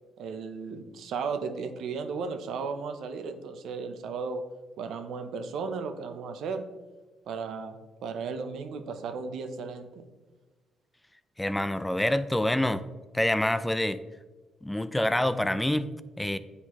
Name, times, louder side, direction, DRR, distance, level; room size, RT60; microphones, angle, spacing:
voice 1, 0.2-4.4 4.8-6.6 7.3-10.1, right 5 dB, 75° right, 8 dB, 0.7 m, -35 dB
voice 2, 11.4-12.8 13.1-14.0 14.6-15.9 16.2-16.4, left 1 dB, 10° left, 13 dB, 0.3 m, -26 dB
9.5 x 4.1 x 3.0 m, 1.3 s
cardioid pair, 90°, 0 cm